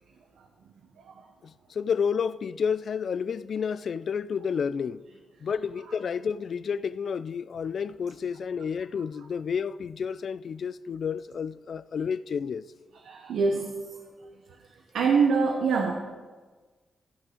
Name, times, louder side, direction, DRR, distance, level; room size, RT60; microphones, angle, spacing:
voice 1, 1.4-5.0 5.4-12.6, left 6 dB, 60° left, 0.3 m, -30 dB
voice 2, 13.0-13.7 14.9-16.0, right 5 dB, 85° right, 1.0 m, -24 dB
15.0 x 6.1 x 5.1 m
cardioid pair, 100°, 0 cm